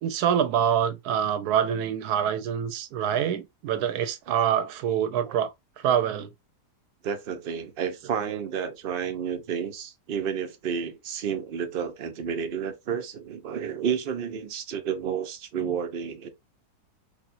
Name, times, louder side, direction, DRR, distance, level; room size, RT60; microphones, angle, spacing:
voice 1, 0.0-6.3 8.2-8.4, right 9 dB, 75° right, 1.1 m, -26 dB
voice 2, 7.0-16.3, right 7 dB, 55° right, 0.6 m, -31 dB
4.2 x 2.7 x 2.5 m
omnidirectional pair, 1.7 m